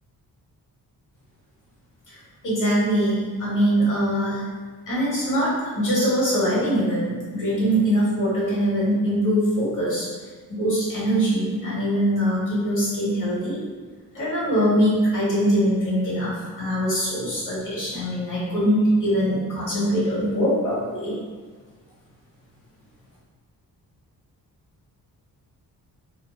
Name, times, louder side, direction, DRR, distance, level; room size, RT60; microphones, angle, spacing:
voice 1, 2.4-4.4 4.9-10.1 10.5-13.6 14.1-21.1, equal, 55° left, -8 dB, 1.3 m, -22 dB
2.7 x 2.0 x 2.3 m, 1.4 s
cardioid pair, 90°, 37 cm